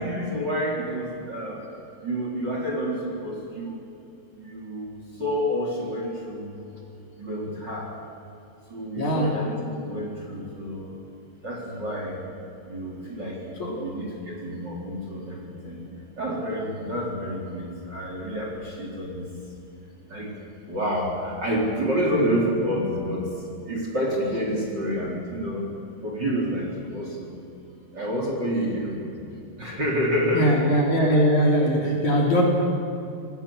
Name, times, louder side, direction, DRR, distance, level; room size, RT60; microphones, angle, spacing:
voice 1, 0.0-1.6 2.0-3.9 4.4-6.6 7.2-7.9 8.7-10.9 11.4-12.2 12.6-15.8 16.2-19.3 20.1-20.4 20.7-23.3 23.6-25.7 26.0-27.3 27.9-29.0 29.6-30.5 31.1-31.2, equal, 25° right, -2 dB, 4.2 m, -29 dB
voice 2, 9.0-9.4 13.6-13.9 30.3-32.4, equal, 45° left, -2 dB, 4.4 m, -21 dB
26.5 x 19.5 x 7.3 m, 2.7 s
omnidirectional pair, 4.9 m